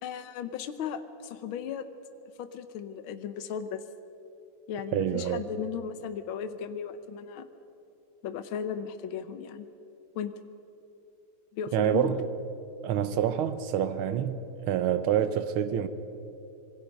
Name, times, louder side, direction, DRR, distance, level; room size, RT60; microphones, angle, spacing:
voice 1, 0.0-1.9 2.4-3.8 4.7-7.5 8.2-9.7 10.1-10.3 11.5-12.1, left 8 dB, 75° left, 1.7 m, -36 dB
voice 2, 4.9-5.4 11.7-12.3 12.8-14.4 14.7-15.9, right 9 dB, 90° right, 1.8 m, -27 dB
26.0 x 22.0 x 5.3 m
omnidirectional pair, 2.3 m